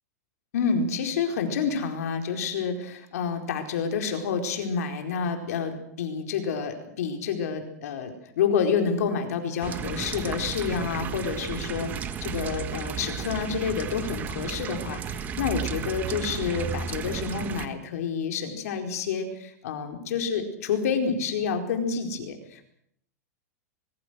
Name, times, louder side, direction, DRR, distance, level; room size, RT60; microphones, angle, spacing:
voice 1, 0.5-22.7, left 6 dB, 65° left, 5 dB, 4.6 m, -29 dB
sound 1, 9.6-17.7, right 7 dB, 20° right, 1.3 m, -33 dB
24.0 x 22.0 x 6.5 m, 0.71 s
supercardioid pair, 165°, 9 cm